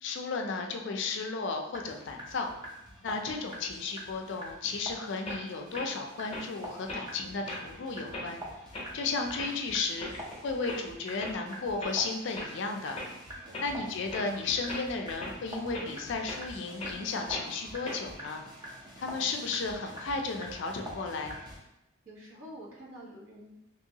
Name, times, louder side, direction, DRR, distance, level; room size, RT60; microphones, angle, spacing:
voice 1, 0.0-2.5 3.0-8.4 8.9-10.1 10.4-13.0 13.6-18.4 19.0-21.4, left 4 dB, 55° left, 3 dB, 0.4 m, -34 dB
sound 1, 1.7-21.6, equal, 20° right, 0.5 m, -46 dB
sound 2, 5.2-5.4 5.7-5.9 6.3-6.4 6.9-7.1 7.5-7.6 8.1-8.3 8.7-8.9 9.4-9.5 10.0-10.3 10.7-10.8 11.2-11.3 11.8-11.9 12.3-12.5 12.9-13.1 13.5-13.7 14.1-14.3 14.7-14.8 15.2-15.3 15.7-15.9 16.3-16.4 16.8-16.9 17.3-17.5 17.8-18.3, left 1 dB, 30° left, 0.7 m, -39 dB
voice 2, 13.2-13.6 22.0-23.5, equal, 75° right, -5 dB, 1.0 m, -48 dB
2.9 x 2.7 x 2.7 m, 0.89 s
head